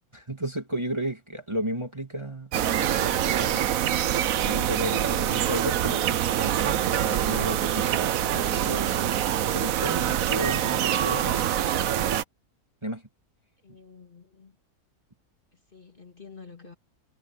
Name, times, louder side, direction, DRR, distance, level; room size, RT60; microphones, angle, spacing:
voice 1, 0.1-3.7 4.4-9.2 9.5-11.4 12.8-13.0, right 1 dB, 20° right, 2.1 m, -34 dB
sound 1, 2.5-12.2, right 11 dB, 65° right, 1.1 m, -25 dB
voice 2, 7.7-8.1 13.6-14.6 15.5-16.7, left 5 dB, 35° left, 2.4 m, -49 dB
omnidirectional pair, 1.6 m